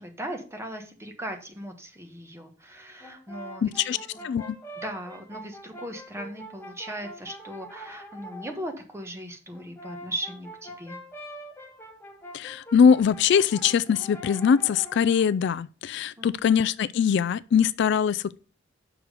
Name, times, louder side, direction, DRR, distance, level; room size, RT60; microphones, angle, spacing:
voice 1, 0.0-4.3 4.8-11.0 16.2-16.4, right 1 dB, 15° right, 1.2 m, -38 dB
Brass instrument, 3.0-8.6 9.5-15.4, equal, 15° left, 1.4 m, -44 dB
voice 2, 3.6-4.0 4.2-4.6 12.3-18.4, left 7 dB, 65° left, 0.3 m, -22 dB
6.1 x 5.0 x 6.5 m
head